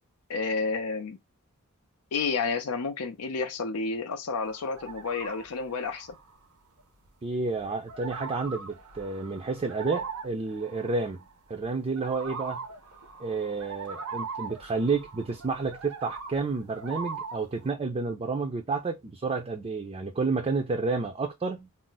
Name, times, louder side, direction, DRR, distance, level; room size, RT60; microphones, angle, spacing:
voice 1, 0.3-1.2 2.1-6.2, left 4 dB, 85° left, 0.5 m, -30 dB
sound 1, 4.4-6.4 6.8-7.1 7.6-11.7 12.0-17.7, right 5 dB, 85° right, 0.7 m, -41 dB
voice 2, 7.2-11.2 11.5-12.6 13.2-21.7, right 4 dB, 25° right, 0.4 m, -30 dB
2.5 x 2.0 x 3.8 m
head